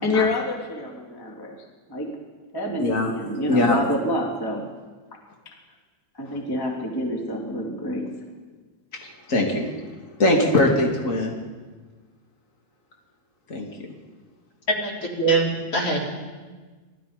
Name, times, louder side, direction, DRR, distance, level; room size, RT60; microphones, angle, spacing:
voice 1, 0.0-1.6 1.9-2.1 2.5-4.6 5.4-5.5 6.1-8.1, left 1 dB, 5° left, -1 dB, 1.9 m, -27 dB
voice 2, 2.8-3.1 3.5-3.8 6.2-6.4 9.3-9.6 10.2-11.3 13.5-13.7, left 1 dB, 50° left, 0 dB, 0.9 m, -21 dB
voice 3, 14.8-16.0, right 3 dB, 30° left, 0 dB, 4.1 m, -23 dB
27.5 x 20.0 x 5.2 m, 1.4 s
omnidirectional pair, 5.8 m